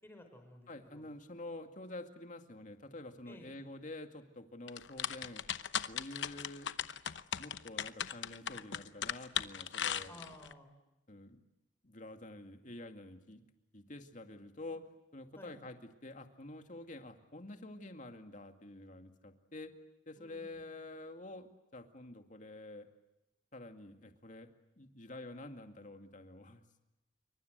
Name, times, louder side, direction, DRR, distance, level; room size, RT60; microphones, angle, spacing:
voice 1, 0.0-1.1 3.3-3.6 10.1-10.7 14.7-14.8 15.4-15.5 20.2-20.7, left 1 dB, 10° left, 5 dB, 5.7 m, -55 dB
voice 2, 0.7-5.4 5.9-6.7 7.4-10.1 11.1-11.4 11.8-13.4 13.7-14.8 15.1-19.7 20.1-22.9 23.5-26.6, left 2 dB, 40° left, 6 dB, 2.3 m, -48 dB
sound 1, 4.7-10.5, left 9 dB, 70° left, 0.9 m, -37 dB
27.5 x 24.5 x 8.1 m, 0.94 s
head